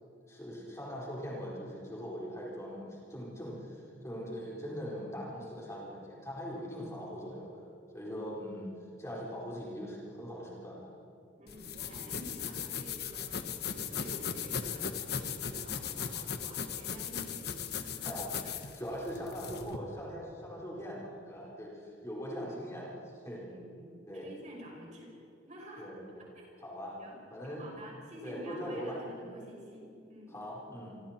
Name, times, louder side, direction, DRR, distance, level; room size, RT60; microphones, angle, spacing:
voice 1, 0.3-7.6 7.9-8.7 9.0-10.9 18.0-18.3 18.8-23.4 24.1-24.3 25.8-26.0 26.6-26.9 27.3-27.6 28.2-29.0 30.3-30.9, equal, 15° left, -5 dB, 4.7 m, -41 dB
voice 2, 11.4-18.6 23.3-25.1 25.5-25.9 26.2-26.5 27.0-27.2 27.4-30.4, equal, 40° right, -2 dB, 6.1 m, -49 dB
sound 1, 11.5-19.8, left 7 dB, 60° left, 1.3 m, -38 dB
27.0 x 24.0 x 4.5 m, 2.6 s
head